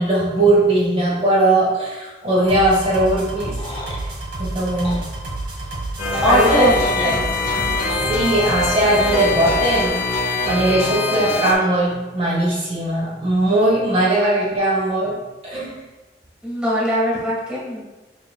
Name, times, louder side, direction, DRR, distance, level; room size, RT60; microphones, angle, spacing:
voice 1, 0.0-3.6 3.9-4.1 4.4-5.0 6.2-6.7 7.0-7.2 8.1-10.0 10.4-15.2 15.4-15.7, right 1 dB, 35° right, -5 dB, 1.7 m, -19 dB
sound 1, 2.5-9.9, right 2 dB, 85° right, 2.0 m, -30 dB
sound 2, 3.4-4.0 4.8-5.0 6.2-7.2 7.9-8.1, left 2 dB, 30° left, 0.8 m, -35 dB
sound 3, 6.0-11.5, left 3 dB, 60° left, 1.5 m, -23 dB
voice 2, 6.2-7.2 7.5-8.0 16.4-17.8, equal, 5° right, -7 dB, 1.9 m, -21 dB
7.0 x 6.3 x 2.3 m, 1.2 s
head